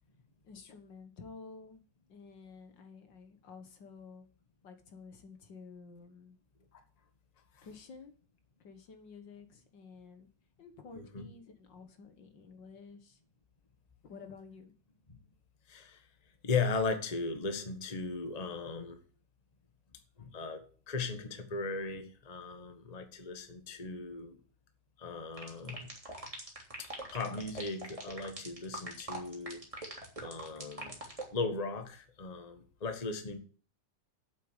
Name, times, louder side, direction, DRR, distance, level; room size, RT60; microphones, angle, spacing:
voice 1, 0.4-1.8 2.1-4.3 4.6-6.4 7.6-8.1 8.6-10.3 10.6-13.2 14.0-14.7, left 4 dB, 45° left, 1.8 m, -51 dB
voice 2, 10.9-11.3 15.7-16.0 16.4-19.0 20.2-24.4 25.0-25.9 27.1-29.6 30.2-31.0 31.3-33.4, left 4 dB, 80° left, 0.3 m, -37 dB
sound 1, 25.4-31.2, right 1 dB, 10° right, 2.9 m, -42 dB
8.4 x 7.7 x 8.1 m
omnidirectional pair, 3.3 m